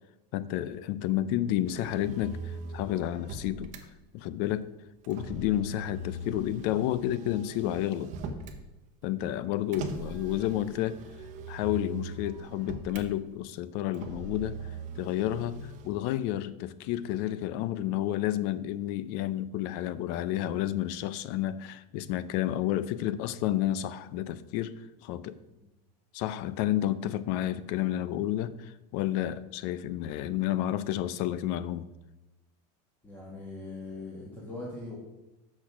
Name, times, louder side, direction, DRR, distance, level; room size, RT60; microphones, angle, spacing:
voice 1, 0.3-3.7 4.1-4.7 5.1-8.1 9.0-11.0 11.5-14.6 15.0-25.4 26.1-31.9, left 13 dB, 55° left, 0.5 m, -31 dB
Motor vehicle (road), 1.6-3.8 5.0-8.6 9.7-13.1 13.9-15.9, right 3 dB, 35° right, 0.9 m, -41 dB
voice 2, 33.0-35.0, left 2 dB, 10° left, 1.4 m, -41 dB
6.2 x 6.2 x 6.0 m
supercardioid pair, 155°, 21 cm